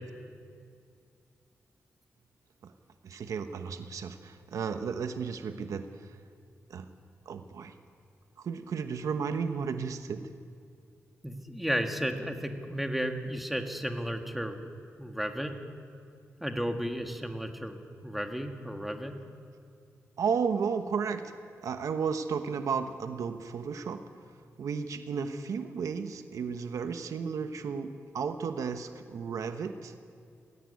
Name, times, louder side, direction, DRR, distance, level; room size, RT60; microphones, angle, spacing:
voice 1, 3.0-6.2 6.7-6.9 7.3-7.7 8.4-10.3 20.2-21.3 21.6-24.0 24.6-29.9, right 6 dB, 80° right, 8 dB, 1.1 m, -33 dB
voice 2, 11.2-14.6 15.0-15.5 16.4-19.1, equal, 5° right, 4 dB, 1.9 m, -33 dB
18.5 x 17.0 x 9.6 m, 2.3 s
wide cardioid pair, 100°, 6 cm